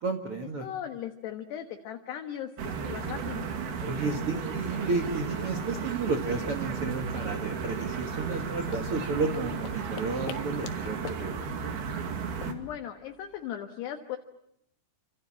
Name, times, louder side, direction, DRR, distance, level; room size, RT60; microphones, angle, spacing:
voice 1, 0.0-0.7 3.8-11.3, right 3 dB, 85° right, 5 dB, 1.2 m, -32 dB
voice 2, 0.6-3.5 12.4-14.2, left 10 dB, 65° left, 5 dB, 3.1 m, -38 dB
sound 1, 2.6-12.5, right 6 dB, 55° right, 4.1 m, -34 dB
sound 2, 8.4-13.5, left 12 dB, 85° left, 4.1 m, -46 dB
28.5 x 27.0 x 7.5 m, 0.78 s
omnidirectional pair, 5.7 m